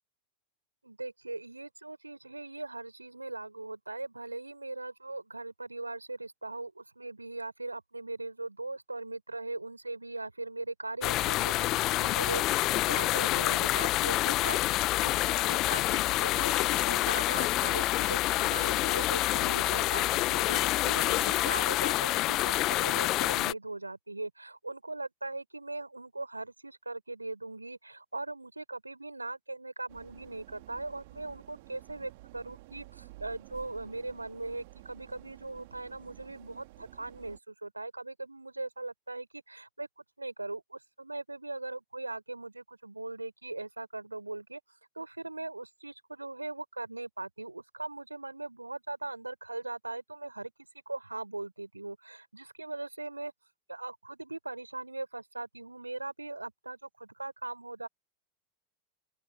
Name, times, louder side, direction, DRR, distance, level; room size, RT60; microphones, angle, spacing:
voice 1, 0.8-44.6 44.9-50.5 50.9-53.3 53.7-57.9, right 2 dB, 85° right, 4.9 m, -40 dB
sound 1, 11.0-23.5, left 17 dB, 35° left, 1.2 m, -27 dB
sound 2, 29.9-37.4, right 21 dB, 50° right, 3.0 m, -52 dB
open air
figure-of-eight pair, 90°, 0 cm